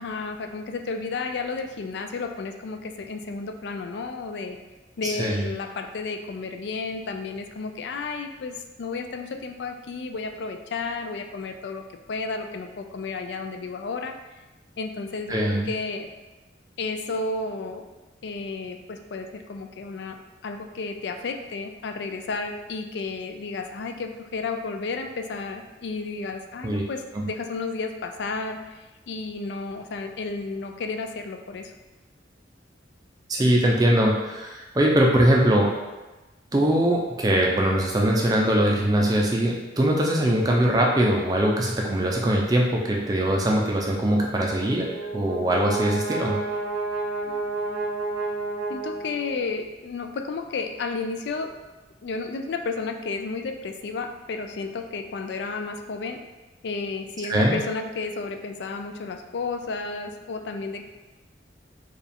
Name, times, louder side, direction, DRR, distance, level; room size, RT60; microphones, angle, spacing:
voice 1, 0.0-4.6 5.0-14.1 14.8-15.4 15.6-16.1 16.8-17.9 18.2-31.7 47.3-47.4 48.7-51.5 52.0-56.2 56.6-60.9, left 4 dB, 65° left, 6 dB, 0.3 m, -32 dB
voice 2, 5.0-5.5 15.3-15.7 26.6-26.8 27.2-27.3 33.3-35.7 36.5-46.4 57.3-57.6, right 1 dB, 20° right, -1 dB, 0.4 m, -22 dB
Brass instrument, 44.5-49.5, right 3 dB, 65° right, 0.7 m, -30 dB
4.6 x 2.3 x 3.4 m, 1.1 s
head